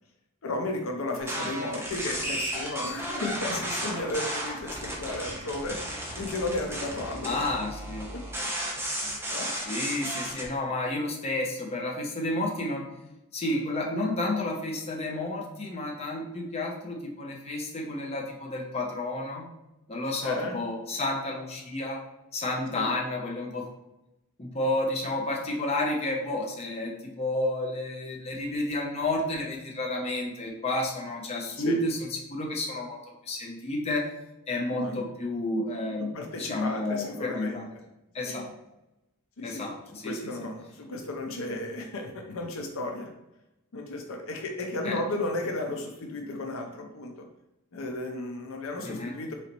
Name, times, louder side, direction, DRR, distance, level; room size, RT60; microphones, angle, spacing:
voice 1, 0.4-5.8 6.2-7.5 8.1-8.2 9.3-9.5 20.2-20.6 22.7-22.9 31.5-31.8 34.8-35.0 36.0-37.7 38.2-38.5 39.4-39.7 40.0-43.1 43.7-47.3 47.7-49.3, left 2 dB, 65° left, 2 dB, 0.6 m, -34 dB
sound 1, 1.2-10.5, right 1 dB, 10° right, 0.7 m, -34 dB
voice 2, 7.2-8.1 9.7-12.9 13.3-19.5 19.9-22.0 22.3-23.7 24.4-32.0 32.3-33.0 33.3-34.1 34.5-37.6 38.1-38.5 39.4-40.2 44.8-45.0 48.8-49.1, left 2 dB, 30° left, -1 dB, 0.6 m, -31 dB
3.9 x 3.2 x 2.9 m, 0.92 s
head